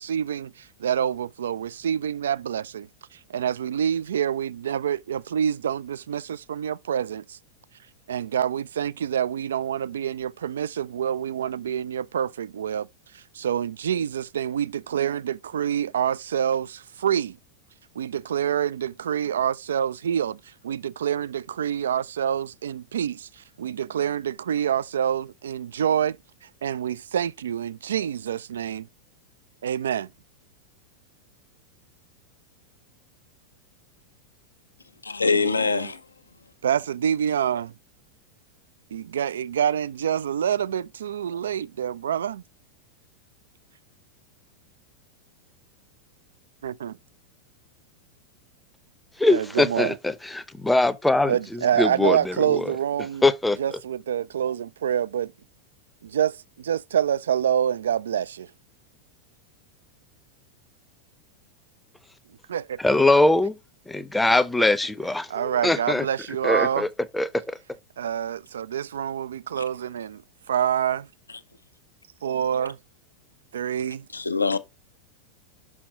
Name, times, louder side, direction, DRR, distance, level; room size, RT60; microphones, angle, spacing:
voice 1, 0.0-7.4 8.1-12.9 13.1-17.4 18.0-26.2 26.6-28.9 29.6-30.1 35.3-35.9 36.6-37.7 38.9-42.4 46.6-47.0 49.3-50.0 51.3-53.2 53.6-55.3 56.0-58.5 62.5-62.8 64.2-64.3 65.3-66.9 68.0-70.2 70.5-71.1 72.2-72.8 73.5-74.1, right 9 dB, 65° right, 0.3 m, -27 dB
voice 2, 35.0-35.9 69.6-69.7 74.1-74.6, left 4 dB, 80° left, 0.7 m, -23 dB
voice 3, 49.2-52.6 53.2-53.6 62.8-63.6 63.9-66.0 66.4-66.9 67.1-67.3, left 2 dB, 5° left, 0.6 m, -22 dB
6.3 x 5.9 x 3.8 m
figure-of-eight pair, 90°, 0 cm